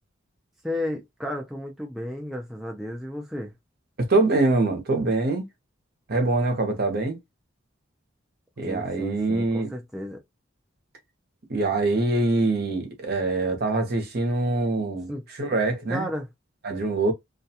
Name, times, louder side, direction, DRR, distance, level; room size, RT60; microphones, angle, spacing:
voice 1, 0.6-3.5 8.7-10.2 15.1-15.2 15.5-15.6 15.9-16.3, left 1 dB, ahead, 0.4 m, -33 dB
voice 2, 4.0-5.5 6.1-7.2 8.6-9.7 11.5-15.1 15.4-16.1 16.6-17.1, right 2 dB, 50° right, 0.7 m, -24 dB
2.3 x 2.2 x 2.7 m
head